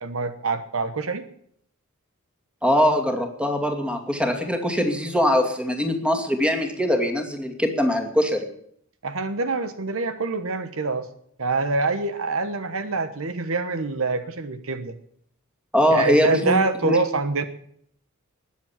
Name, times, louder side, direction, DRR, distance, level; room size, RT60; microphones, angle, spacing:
voice 1, 0.0-1.3 9.0-11.1 11.4-15.0 15.9-17.4, right 3 dB, 70° right, 11 dB, 1.1 m, -25 dB
voice 2, 2.6-8.5 15.7-17.0, left 1 dB, 5° right, 4 dB, 2.4 m, -22 dB
20.5 x 7.6 x 7.4 m, 0.66 s
head